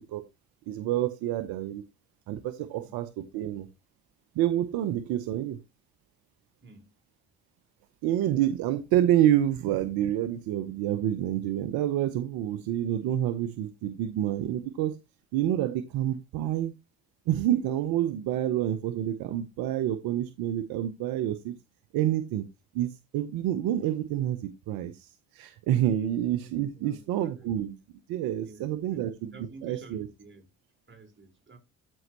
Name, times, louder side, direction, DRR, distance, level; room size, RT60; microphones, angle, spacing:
voice 1, 0.7-1.8 2.3-3.7 4.4-5.6 8.0-14.9 15.3-16.7 17.3-21.5 21.9-22.5 22.7-27.8 28.1-29.3 29.6-30.1, right 12 dB, 75° right, 0.8 m, -28 dB
voice 2, 6.6-6.9 25.9-26.2 26.8-27.5 28.4-28.7 28.9-30.5 30.9-31.6, right 3 dB, 30° right, 3.9 m, -51 dB
13.5 x 5.4 x 3.0 m
hypercardioid pair, 50°, 36 cm